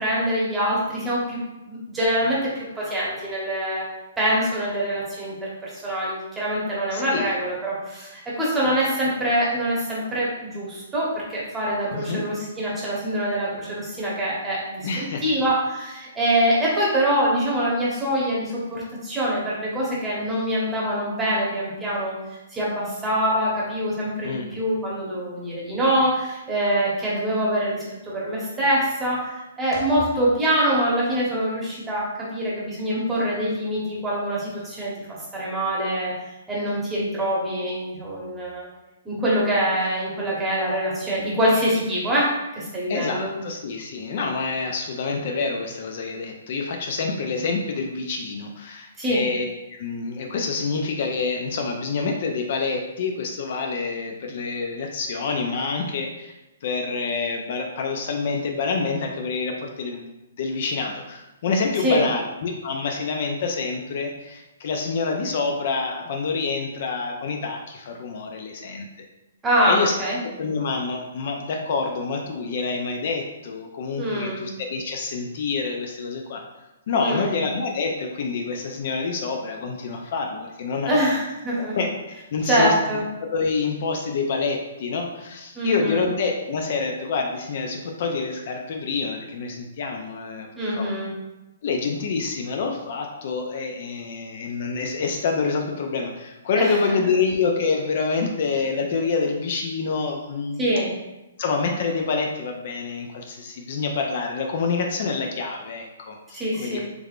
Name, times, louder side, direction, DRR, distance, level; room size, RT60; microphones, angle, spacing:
voice 1, 0.0-1.4 1.6-3.8 4.2-35.1 35.3-36.1 36.5-38.7 39.0-43.3 49.0-49.2 61.8-62.1 69.4-70.2 74.0-74.4 77.0-77.3 80.9-81.8 82.4-83.0 85.5-86.1 90.6-91.1 96.6-96.8 100.6-100.9 106.3-106.8, equal, 10° right, -6 dB, 0.9 m, -24 dB
voice 2, 6.9-7.3 11.9-12.2 14.8-15.2 24.2-24.6 42.9-49.5 49.8-56.3 56.6-68.9 69.7-69.9 70.2-76.4 76.9-81.0 81.6-81.9 82.3-82.7 83.2-90.5 90.7-90.9 91.6-100.6 101.4-106.8, left 4 dB, 50° left, 2 dB, 0.4 m, -27 dB
3.4 x 3.2 x 2.4 m, 1.0 s
hypercardioid pair, 160°, 0 cm